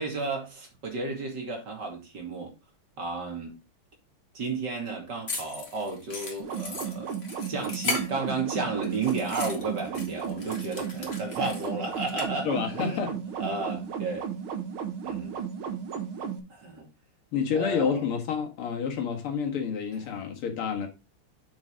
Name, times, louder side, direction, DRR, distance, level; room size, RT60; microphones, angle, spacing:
voice 1, 0.0-2.5 3.0-3.6 4.3-7.1 7.5-13.0 13.4-14.3 15.0-15.4 16.5-16.9 17.5-18.0, right 3 dB, 50° right, 3.2 m, -33 dB
sound 1, 5.3-8.5 8.8-12.2, left 3 dB, 30° left, 2.1 m, -37 dB
sound 2, 6.4-16.4, right 7 dB, 75° right, 2.2 m, -34 dB
voice 2, 12.5-13.2 17.3-20.9, left 6 dB, 85° left, 2.5 m, -29 dB
7.3 x 7.1 x 3.7 m
omnidirectional pair, 2.4 m